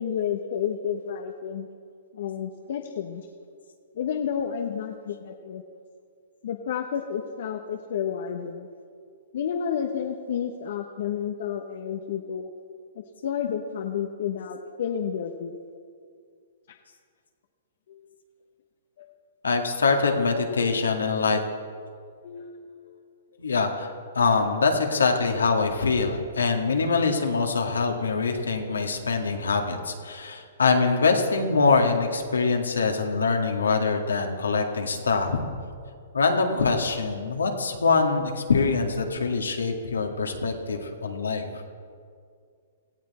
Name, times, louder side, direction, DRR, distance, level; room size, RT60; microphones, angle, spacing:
voice 1, 0.0-1.7 2.1-3.3 3.9-5.6 6.4-8.7 9.3-12.5 12.9-15.6 17.9-18.1 19.0-19.1 22.2-23.0, left 8 dB, 60° left, 4 dB, 1.0 m, -31 dB
voice 2, 19.4-21.4 23.4-23.9 24.1-35.4 36.1-41.5, left 4 dB, 85° left, 3 dB, 2.0 m, -24 dB
17.5 x 15.0 x 4.3 m, 2.2 s
hypercardioid pair, 125°, 0 cm